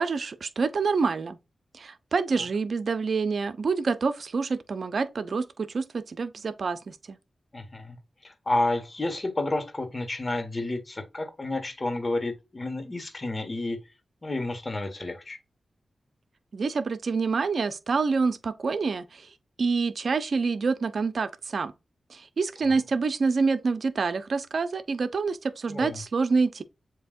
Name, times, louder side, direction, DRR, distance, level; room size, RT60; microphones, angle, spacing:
voice 1, 0.0-1.4 1.7-7.2 16.5-19.3 19.6-21.7 22.1-26.6, right 4 dB, 65° right, 0.6 m, -27 dB
voice 2, 7.5-13.8 14.2-15.4 25.7-26.0, left 2 dB, 35° left, 1.5 m, -30 dB
7.4 x 2.9 x 2.5 m
cardioid pair, 50°, 0 cm